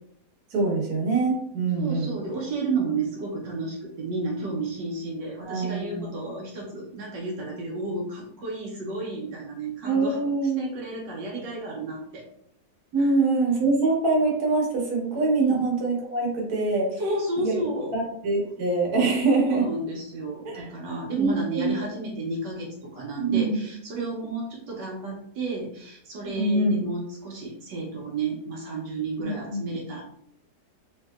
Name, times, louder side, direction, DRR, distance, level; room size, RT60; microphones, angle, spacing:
voice 1, 0.5-2.2 5.4-6.3 9.8-10.7 12.9-17.0 17.4-17.6 17.9-19.7 20.4-20.7 21.2-21.7 23.1-23.6 26.4-26.8 29.2-29.7, right 3 dB, 65° right, -3 dB, 1.4 m, -24 dB
voice 2, 1.7-10.2 10.6-12.3 13.0-13.1 15.4-15.6 17.0-17.9 19.3-30.0, right 3 dB, 85° right, -2 dB, 1.4 m, -32 dB
3.5 x 2.7 x 2.3 m, 0.70 s
omnidirectional pair, 1.9 m